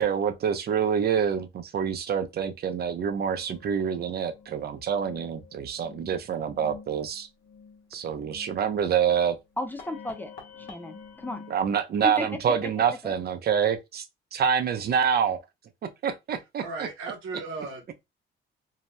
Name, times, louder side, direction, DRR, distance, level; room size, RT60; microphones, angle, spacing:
voice 1, 0.0-7.3 7.9-9.3 11.5-14.0 14.3-15.4 16.0-16.9, right 7 dB, 55° right, 0.6 m, -26 dB
sound 1, 3.0-11.6, left 6 dB, 70° left, 1.0 m, -49 dB
voice 2, 9.6-11.4 12.0-13.1, left 1 dB, 10° left, 0.4 m, -35 dB
voice 3, 16.6-18.0, right 4 dB, 85° right, 0.8 m, -36 dB
2.8 x 2.1 x 3.1 m
cardioid pair, 90°, 20 cm